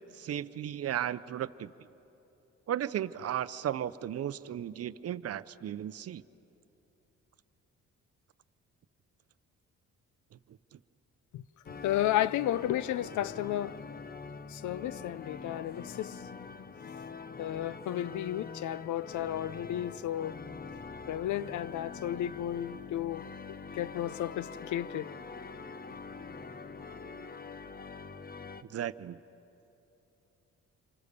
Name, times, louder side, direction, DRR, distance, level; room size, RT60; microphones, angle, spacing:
voice 1, 0.1-1.7 2.7-6.2 10.7-10.8 28.7-29.2, right 10 dB, 55° right, 0.7 m, -35 dB
sound 1, 11.7-28.6, left 5 dB, 30° left, 0.8 m, -44 dB
voice 2, 11.8-13.8 14.5-16.2 17.4-20.4 21.1-25.1, left 12 dB, 75° left, 0.6 m, -33 dB
28.0 x 25.0 x 6.8 m
cardioid pair, 90°, 30 cm